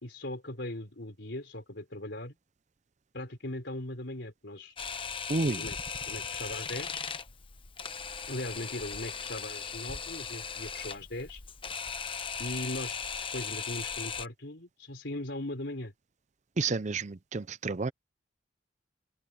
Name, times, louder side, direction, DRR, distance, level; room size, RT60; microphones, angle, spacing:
voice 1, 0.0-2.3 3.1-4.8 5.4-5.8 6.1-7.0 8.2-11.4 12.4-13.0 13.3-15.9, left 1 dB, 65° left, 4.3 m, -39 dB
Camera, 4.8-14.3, left 6 dB, 30° left, 0.9 m, -38 dB
voice 2, 5.3-5.6 16.6-17.9, right 3 dB, 40° right, 0.6 m, -30 dB
head